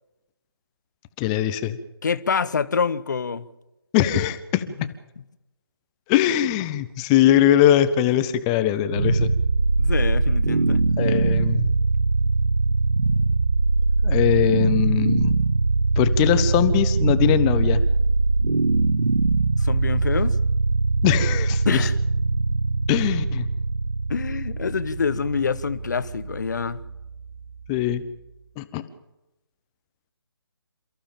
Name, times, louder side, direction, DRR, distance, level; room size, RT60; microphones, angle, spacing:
voice 1, 1.2-1.8 3.9-4.6 6.1-9.3 11.0-11.7 14.0-15.3 16.0-17.8 21.0-21.9 22.9-23.5 27.7-28.0 28.6-28.8, left 11 dB, 15° left, 0.9 m, -21 dB
voice 2, 2.0-3.5 4.8-4.9 9.8-10.8 19.6-20.4 21.6-21.9 24.1-26.8, left 5 dB, 45° left, 1.1 m, -26 dB
sound 1, 8.9-28.0, right 3 dB, 70° right, 1.0 m, -22 dB
28.5 x 15.0 x 7.2 m
figure-of-eight pair, 145°, 13 cm